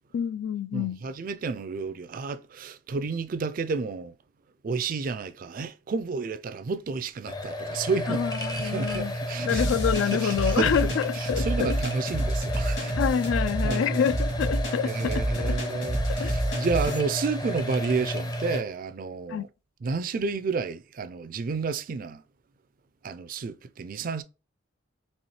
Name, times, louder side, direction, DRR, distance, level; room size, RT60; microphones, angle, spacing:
voice 1, 0.1-1.0 8.1-9.1 9.5-11.8 13.0-15.6 16.1-16.4 19.3-19.4, left 8 dB, 75° left, 0.3 m, -27 dB
voice 2, 0.7-4.2 4.6-9.7 10.1-13.0 13.6-14.0 14.8-19.5 19.8-22.2 23.0-24.2, right 4 dB, 45° right, 0.3 m, -31 dB
sound 1, 7.3-18.6, equal, 20° left, 0.5 m, -32 dB
sound 2, 9.5-17.0, right 1 dB, 60° left, 1.9 m, -29 dB
4.2 x 3.0 x 3.1 m
head